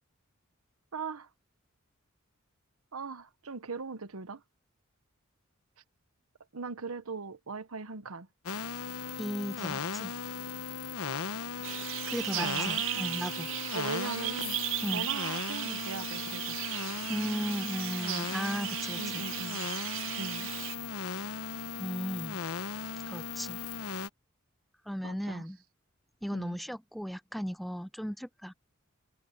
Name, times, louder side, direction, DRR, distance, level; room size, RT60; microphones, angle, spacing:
voice 1, 0.9-1.3 2.9-4.4 6.5-8.3 12.4-12.8 13.7-14.6 14.9-16.6 19.0-19.6 20.2-20.5 25.0-25.4 26.3-26.6, right 4 dB, 80° right, 1.0 m, -39 dB
sound 1, 8.5-24.1, left 5 dB, 85° left, 1.1 m, -37 dB
voice 2, 9.2-10.1 12.1-13.5 14.8-15.1 17.1-19.2 21.8-22.4 23.1-23.6 24.9-25.6 26.2-28.5, equal, ahead, 0.5 m, -36 dB
sound 2, 11.6-20.8, right 15 dB, 60° right, 0.5 m, -36 dB
head